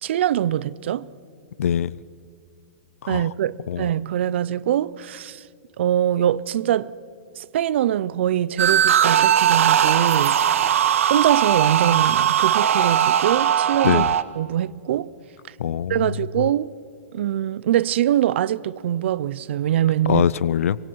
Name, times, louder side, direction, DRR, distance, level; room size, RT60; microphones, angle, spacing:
voice 1, 0.0-1.1 3.1-5.4 5.8-6.9 7.4-10.4 11.1-14.0 14.4-15.1 15.9-16.7 17.1-20.3, right 11 dB, 55° right, 0.6 m, -23 dB
voice 2, 1.6-2.0 3.0-3.3 3.7-3.9 13.8-14.1 15.6-16.1 16.4-16.5 20.1-20.8, left 9 dB, 90° left, 0.5 m, -22 dB
sound 1, 8.6-14.2, right 9 dB, 75° right, 1.1 m, -19 dB
30.0 x 25.0 x 4.7 m
hypercardioid pair, 170°, 7 cm